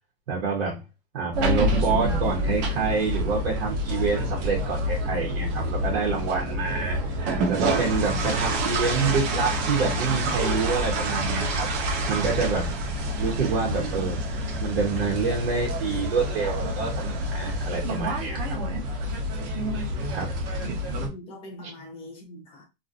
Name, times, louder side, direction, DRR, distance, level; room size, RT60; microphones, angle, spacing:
voice 1, 0.3-0.8 1.1-7.0 7.5-11.7 12.1-12.7 13.2-14.2 14.6-18.6 20.1-20.4 21.6-21.7, right 5 dB, 85° right, 1.2 m, -27 dB
sound 1, 1.3-21.1, left 1 dB, 45° right, 1.0 m, -28 dB
sound 2, 7.3-17.8, right 5 dB, 25° right, 0.4 m, -31 dB
voice 2, 20.6-22.6, equal, 20° left, 0.8 m, -43 dB
3.0 x 2.8 x 2.5 m
supercardioid pair, 165°, 30 cm